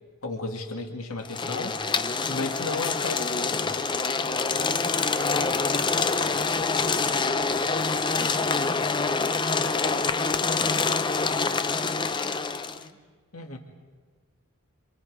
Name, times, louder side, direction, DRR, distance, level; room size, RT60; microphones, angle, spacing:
voice 1, 0.2-1.8 2.3-3.7 13.3-13.6, left 3 dB, 80° left, 3 dB, 2.3 m, -33 dB
sound 1, 1.2-12.8, left 4 dB, 20° left, 0.6 m, -26 dB
voice 2, 9.1-13.0 13.4-13.6, left 1 dB, 45° left, -1 dB, 2.9 m, -48 dB
27.5 x 25.5 x 4.9 m, 1.5 s
head